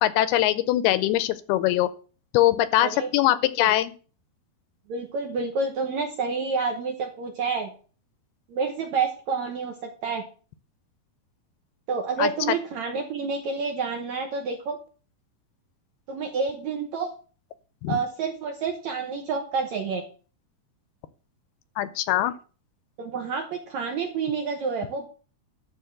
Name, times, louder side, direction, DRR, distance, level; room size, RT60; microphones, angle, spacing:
voice 1, 0.0-1.9 2.3-3.9 12.2-12.3 17.8-18.0 21.8-22.3, left 14 dB, 80° left, 15 dB, 2.5 m, -22 dB
voice 2, 2.8-3.1 3.6-3.7 4.9-7.7 8.5-10.2 11.9-14.8 16.1-17.1 17.9-20.0 23.0-25.1, right 5 dB, 65° right, 3 dB, 1.9 m, -29 dB
12.0 x 4.1 x 7.7 m, 0.38 s
omnidirectional pair, 4.6 m